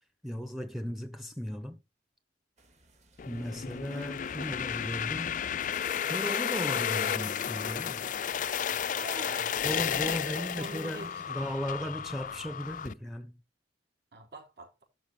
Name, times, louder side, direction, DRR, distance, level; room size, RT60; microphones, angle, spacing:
voice 1, 0.2-1.8 3.3-5.4 6.0-8.0 9.6-13.4, equal, ahead, 0.7 m, -36 dB
sound 1, 2.6-10.8, right 2 dB, 40° right, 2.4 m, -61 dB
sound 2, 3.2-12.9, left 8 dB, 45° left, 0.4 m, -33 dB
voice 2, 9.0-9.6 10.0-11.4 14.1-14.8, right 3 dB, 60° right, 4.5 m, -45 dB
12.0 x 4.9 x 4.8 m
head